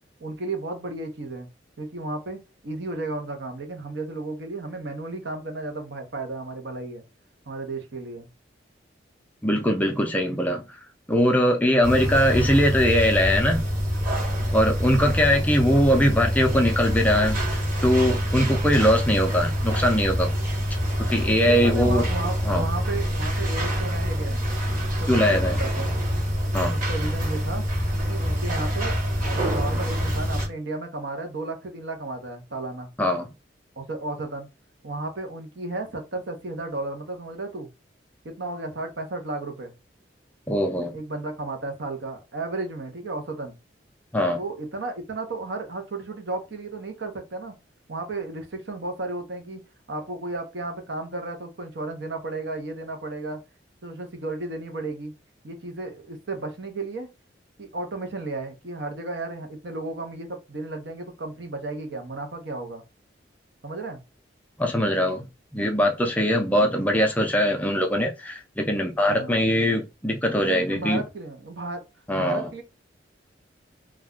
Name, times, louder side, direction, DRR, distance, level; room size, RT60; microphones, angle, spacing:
voice 1, 0.2-1.5 1.8-7.0 7.5-8.3 11.7-12.0 15.0-15.3 18.6-18.9 21.4-24.5 24.8-26.0 26.7-27.6 28.0-29.0 29.2-32.9 33.8-34.5 34.8-37.7 38.2-39.7 40.9-43.6 44.4-47.5 47.9-53.4 53.8-55.1 55.4-57.1 57.6-62.8 63.6-64.0 66.6-66.8 69.1-69.4 70.4-71.8 72.1-72.6, right 2 dB, 65° right, 0.7 m, -33 dB
voice 2, 9.4-10.6 11.1-13.6 14.5-20.3 21.0-22.1 22.5-22.7 25.1-25.6 26.5-26.8 33.0-33.3 40.5-41.0 44.1-44.4 64.6-65.2 65.5-71.0 72.1-72.5, equal, 10° left, 0.4 m, -21 dB
sound 1, 11.8-30.5, equal, 45° right, 1.4 m, -25 dB
2.3 x 2.2 x 3.6 m
head